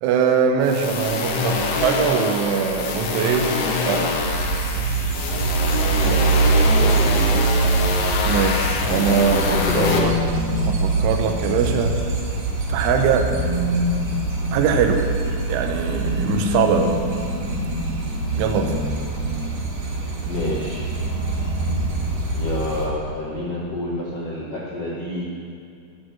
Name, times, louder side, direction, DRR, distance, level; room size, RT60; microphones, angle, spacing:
voice 1, 0.0-4.1 8.3-10.2 10.6-12.0 12.7-13.3 14.5-15.0 15.5-17.0 18.4-18.8, right 6 dB, 85° right, 4 dB, 3.4 m, -22 dB
sound 1, 0.6-10.0, left 4 dB, 65° left, 2.3 m, -24 dB
sound 2, 4.2-22.9, right 4 dB, 50° right, 2.2 m, -24 dB
voice 2, 6.0-7.2 9.3-10.2 20.2-21.0 22.3-25.2, left 1 dB, 85° left, -5 dB, 1.3 m, -28 dB
sound 3, 9.1-12.4 13.0-19.7 20.6-22.6, left 2 dB, 45° left, 2.5 m, -29 dB
16.5 x 6.8 x 7.1 m, 2.4 s
omnidirectional pair, 5.5 m